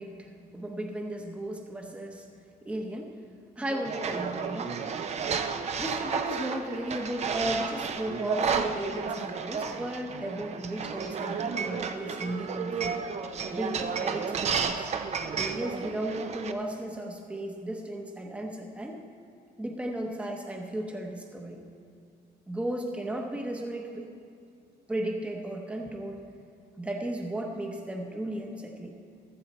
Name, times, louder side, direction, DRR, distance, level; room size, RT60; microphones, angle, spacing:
voice 1, 0.0-2.2 2.6-3.1 3.6-4.7 5.8-13.0 13.5-14.9 15.4-19.0 19.6-21.6 22.5-24.1 24.9-26.2 26.8-29.0, right 1 dB, 5° right, 2 dB, 0.9 m, -35 dB
sound 1, 3.8-16.5, right 6 dB, 40° right, 0.6 m, -32 dB
15.0 x 13.5 x 4.2 m, 2.4 s
cardioid pair, 170°, 17 cm